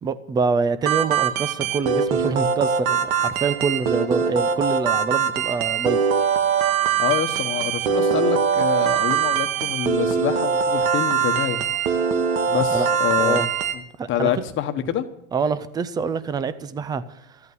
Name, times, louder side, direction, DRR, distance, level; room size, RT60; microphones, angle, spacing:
voice 1, 0.0-6.0 12.7-12.9 13.2-13.5 14.0-14.4 15.3-17.4, right 4 dB, 10° right, 0.4 m, -25 dB
sound 1, 0.8-13.7, right 6 dB, 80° right, 1.7 m, -22 dB
voice 2, 7.0-11.6 12.5-13.4 14.1-15.0, left 10 dB, 30° left, 1.2 m, -26 dB
13.5 x 8.4 x 9.4 m
supercardioid pair, 140°, 41 cm